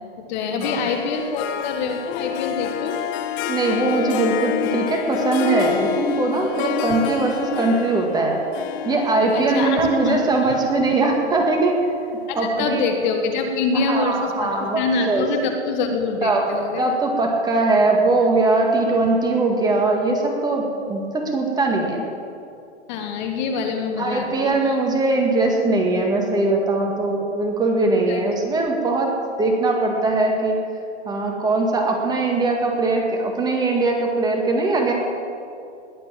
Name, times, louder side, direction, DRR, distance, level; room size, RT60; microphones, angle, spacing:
voice 1, 0.2-2.9 6.4-6.5 9.3-10.5 12.3-16.9 22.9-24.8 28.1-28.2, left 4 dB, 40° left, 4 dB, 1.7 m, -25 dB
Harp, 0.6-12.0, left 11 dB, 20° left, 0.4 m, -29 dB
voice 2, 3.5-8.4 8.8-11.9 12.3-12.9 13.9-15.3 16.2-16.5 16.8-22.0 24.0-29.1 29.4-30.6 31.1-34.9, right 2 dB, 10° right, 1 dB, 1.9 m, -21 dB
20.5 x 8.4 x 7.4 m, 2.5 s
hypercardioid pair, 135°, 35 cm